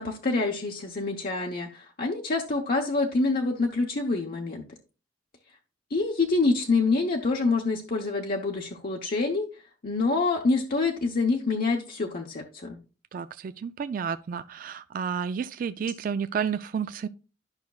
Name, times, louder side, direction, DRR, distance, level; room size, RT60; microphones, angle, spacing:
voice 1, 0.0-4.6 5.9-9.5 9.8-12.8, left 3 dB, 55° left, 0.8 m, -26 dB
voice 2, 13.1-17.1, right 7 dB, 50° right, 0.3 m, -31 dB
11.5 x 5.8 x 2.3 m
head